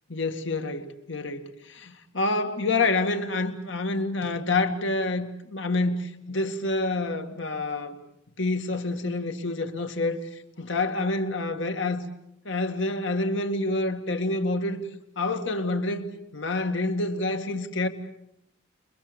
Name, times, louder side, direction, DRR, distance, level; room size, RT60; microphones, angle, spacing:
voice 1, 0.1-7.9 8.4-10.2 10.6-12.0 12.5-14.8 15.2-17.9, left 2 dB, 60° left, 2.1 m, -27 dB
29.0 x 23.0 x 7.1 m
head